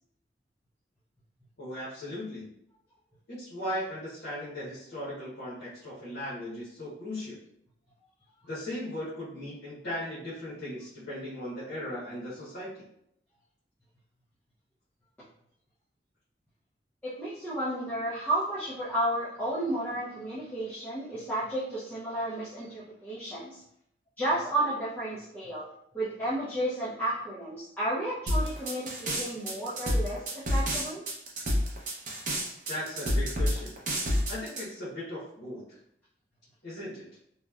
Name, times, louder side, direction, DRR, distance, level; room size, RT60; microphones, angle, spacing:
voice 1, 1.6-2.4 3.3-7.4 8.4-12.8 32.7-33.8 34.3-35.8 36.6-37.1, left 1 dB, 65° left, -9 dB, 0.8 m, -37 dB
voice 2, 17.0-23.6 24.2-25.7 25.9-31.0, right 1 dB, 10° left, -11 dB, 0.4 m, -32 dB
sound 1, 28.3-34.6, equal, 45° right, 0.5 m, -28 dB
2.8 x 2.1 x 2.3 m, 0.76 s
head